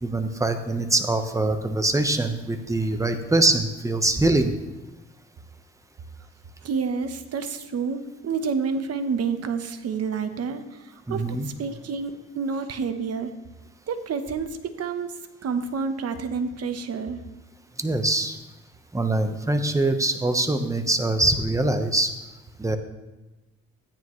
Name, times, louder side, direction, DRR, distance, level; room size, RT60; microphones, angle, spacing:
voice 1, 0.0-4.5 11.1-11.5 17.8-18.4 18.9-22.1 22.6-22.8, right 2 dB, 10° right, 7 dB, 1.0 m, -23 dB
voice 2, 6.6-13.3 13.9-15.1 15.4-17.2, right 5 dB, 55° right, 8 dB, 1.1 m, -29 dB
13.5 x 9.6 x 3.2 m, 1.1 s
cardioid pair, 90°, 30 cm